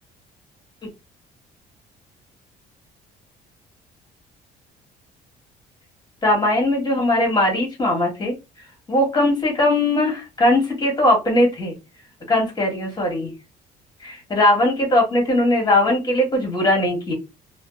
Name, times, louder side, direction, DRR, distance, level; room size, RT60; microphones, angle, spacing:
voice 1, 6.2-8.3 8.9-11.7 12.3-13.3 14.0-17.1, left 1 dB, 25° left, 0 dB, 1.5 m, -19 dB
2.7 x 2.4 x 2.5 m, 0.25 s
cardioid pair, 110°, 17 cm